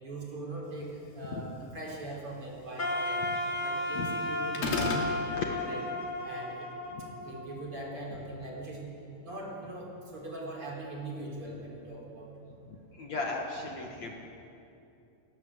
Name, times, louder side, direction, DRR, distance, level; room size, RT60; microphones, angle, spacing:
voice 1, 0.0-3.3 3.6-5.8 6.2-6.7 7.2-8.9 9.2-12.3, right 2 dB, 35° right, -3 dB, 5.1 m, -41 dB
Wind instrument woodwind instrument, 2.8-7.8, left 1 dB, 30° left, 2.5 m, -34 dB
sound 1, 4.5-5.1, left 3 dB, 85° left, 4.5 m, -29 dB
voice 2, 12.7-14.1, left 3 dB, 55° left, 0 dB, 2.7 m, -36 dB
30.0 x 17.0 x 8.0 m, 2.7 s
omnidirectional pair, 4.3 m